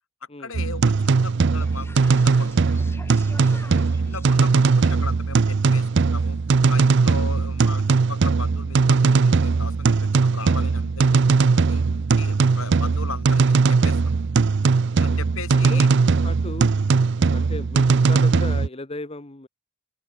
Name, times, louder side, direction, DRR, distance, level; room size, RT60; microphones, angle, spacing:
voice 1, 0.4-1.9 2.1-2.7 4.0-6.4 6.7-7.8 8.1-11.2 11.5-14.0 15.0-15.9, left 4 dB, 65° left, 3.9 m, -37 dB
sound 1, 0.5-18.7, right 4 dB, 55° right, 0.5 m, -19 dB
sound 2, 1.6-7.1, left 1 dB, 10° left, 5.1 m, -46 dB
voice 2, 3.5-3.9 7.2-7.4 15.0-15.2 15.5-15.8 16.2-16.7 17.3-19.5, left 2 dB, 25° left, 1.0 m, -36 dB
open air
head